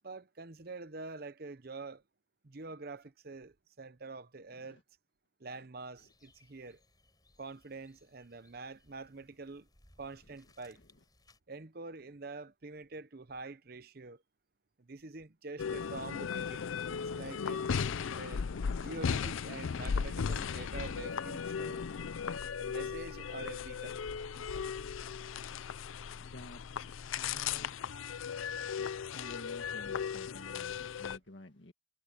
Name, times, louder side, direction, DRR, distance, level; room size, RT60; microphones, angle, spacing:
voice 1, 0.0-2.0 2.4-4.8 5.4-6.8 7.4-9.7 10.0-10.8 11.5-14.2 14.8-17.6 18.1-18.4 18.7-21.9 22.6-24.0, right 3 dB, 50° right, 0.8 m, -46 dB
sound 1, 6.0-11.4, left 2 dB, 20° left, 7.2 m, -67 dB
sound 2, 15.6-31.2, left 6 dB, 90° left, 0.5 m, -37 dB
voice 2, 26.2-26.6 27.2-27.7 29.1-31.7, left 1 dB, 65° left, 1.8 m, -51 dB
head